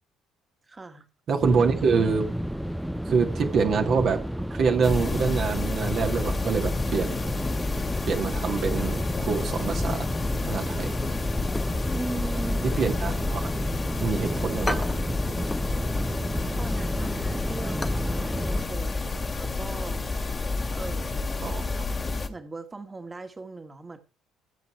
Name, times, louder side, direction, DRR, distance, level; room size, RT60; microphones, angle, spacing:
voice 1, 0.7-1.0 11.9-12.7 16.6-20.1 20.7-21.4 22.3-24.0, right 3 dB, 25° right, 2.1 m, -39 dB
voice 2, 1.3-2.3 3.1-4.2 4.5-7.2 8.1-10.0 10.5-10.9 12.6-13.5 14.0-14.9 21.4-21.9, right 5 dB, 50° right, 2.1 m, -25 dB
sound 1, 1.4-18.7, equal, 5° right, 1.0 m, -32 dB
sound 2, 4.8-22.3, left 3 dB, 30° left, 2.3 m, -30 dB
sound 3, 11.4-12.2 12.5-13.9 14.2-14.3 14.7-15.8 16.1-16.3 16.7-18.1 18.4-18.5 19.0-19.2 19.5-19.6, left 2 dB, 15° left, 1.0 m, -36 dB
15.0 x 7.7 x 4.5 m
hypercardioid pair, 55°, 0 cm